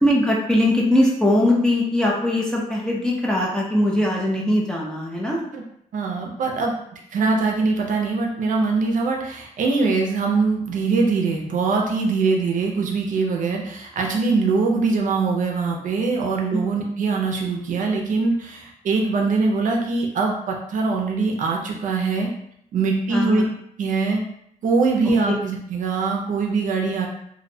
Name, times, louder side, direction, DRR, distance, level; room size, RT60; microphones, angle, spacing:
voice 1, 0.0-5.4 16.5-16.6 23.1-23.5 25.3-25.4, left 1 dB, 5° left, -4 dB, 0.4 m, -20 dB
voice 2, 5.9-22.3 22.7-23.4 23.8-24.2 24.6-27.1, right 4 dB, 70° right, 1 dB, 0.4 m, -22 dB
2.5 x 2.0 x 2.6 m, 0.72 s
wide cardioid pair, 145°, 14 cm